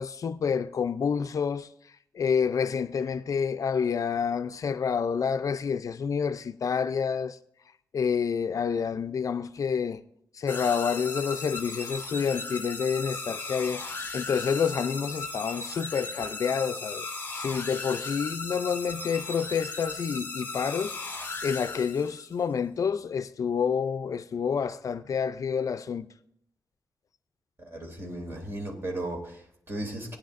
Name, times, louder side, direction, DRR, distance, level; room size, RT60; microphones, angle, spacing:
voice 1, 0.0-1.7 2.1-7.4 7.9-10.0 10.3-17.1 17.4-26.1, left 6 dB, 55° left, 0.4 m, -28 dB
sound 1, 10.5-22.3, left 3 dB, 30° left, 1.0 m, -37 dB
voice 2, 27.6-30.2, right 1 dB, 35° right, 2.7 m, -36 dB
19.5 x 9.7 x 2.5 m
wide cardioid pair, 130°, 7 cm